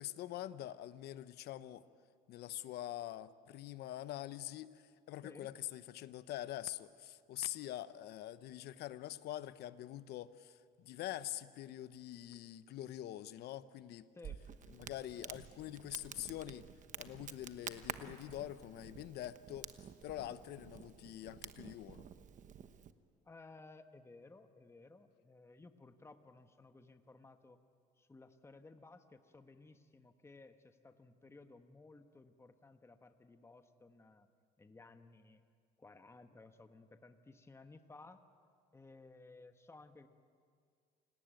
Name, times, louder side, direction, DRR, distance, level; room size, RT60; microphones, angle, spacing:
voice 1, 0.0-1.8 2.3-14.1 14.7-16.6 17.0-22.1, left 13 dB, 75° left, 14 dB, 0.9 m, -45 dB
voice 2, 14.1-14.5 23.2-27.6 28.0-34.3 34.6-35.4 35.8-38.2 38.7-40.1, left 3 dB, 15° left, 8 dB, 1.3 m, -58 dB
Crackle, 14.2-22.9, right 8 dB, 50° right, 1.2 m, -50 dB
28.5 x 18.5 x 9.2 m, 2.1 s
cardioid pair, 110°, 17 cm